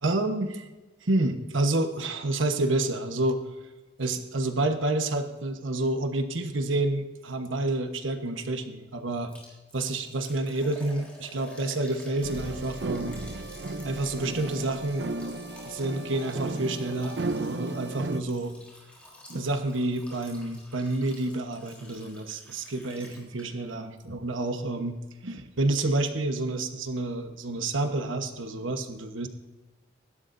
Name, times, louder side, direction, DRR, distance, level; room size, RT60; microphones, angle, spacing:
voice 1, 0.0-0.7 1.0-3.4 4.0-9.3 9.7-13.2 13.8-15.1 15.7-18.6 19.3-25.0 25.2-29.3, right 2 dB, 90° right, 6 dB, 1.2 m, -29 dB
Liquid, 9.3-23.7 24.0-24.1 24.6-24.7, left 1 dB, 5° left, 3.7 m, -50 dB
sound 1, 12.2-18.2, right 2 dB, 60° right, 0.6 m, -34 dB
25.0 x 12.5 x 2.7 m, 1.2 s
head